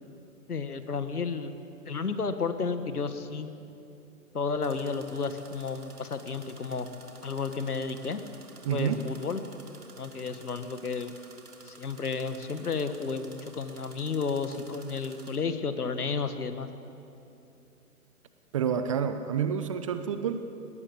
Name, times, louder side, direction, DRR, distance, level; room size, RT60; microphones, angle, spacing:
voice 1, 0.5-1.5 1.8-3.5 4.3-6.9 7.2-8.2 8.7-9.4 10.0-11.1 11.6-16.7, left 5 dB, 75° left, 10 dB, 1.6 m, -32 dB
sound 1, 0.8-0.9 4.6-15.4, right 3 dB, 75° right, 2.7 m, -53 dB
voice 2, 8.6-9.0 18.5-20.5, right 7 dB, 20° right, 10 dB, 0.6 m, -29 dB
22.0 x 19.0 x 7.1 m, 2.8 s
figure-of-eight pair, 125°, 46 cm